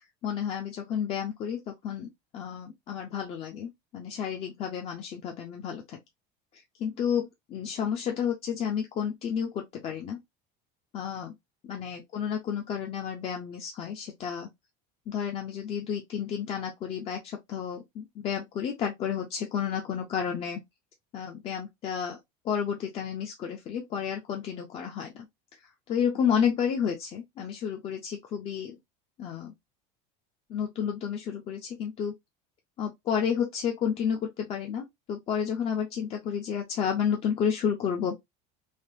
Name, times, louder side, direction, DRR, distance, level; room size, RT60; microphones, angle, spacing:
voice 1, 0.2-6.0 6.5-10.2 10.9-11.3 11.6-14.5 15.1-20.6 21.1-22.2 22.4-25.3 25.6-28.8 29.2-29.5 30.5-32.1 32.8-38.2, left 8 dB, 30° left, 0.4 m, -31 dB
3.3 x 2.2 x 2.6 m
cardioid pair, 160°, 20 cm